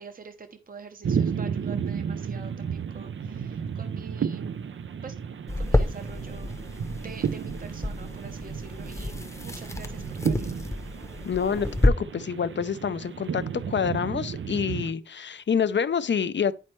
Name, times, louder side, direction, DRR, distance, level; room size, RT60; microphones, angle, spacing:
voice 1, 0.0-4.6 5.0-5.2 5.6-6.6 7.0-10.6, right 5 dB, 45° right, 0.7 m, -46 dB
sound 1, 1.0-14.9, right 7 dB, 85° right, 0.4 m, -33 dB
sound 2, 5.5-11.9, left 1 dB, 15° left, 0.7 m, -29 dB
voice 2, 11.2-16.5, left 7 dB, 70° left, 0.5 m, -27 dB
10.0 x 4.3 x 3.1 m
wide cardioid pair, 85°, 20 cm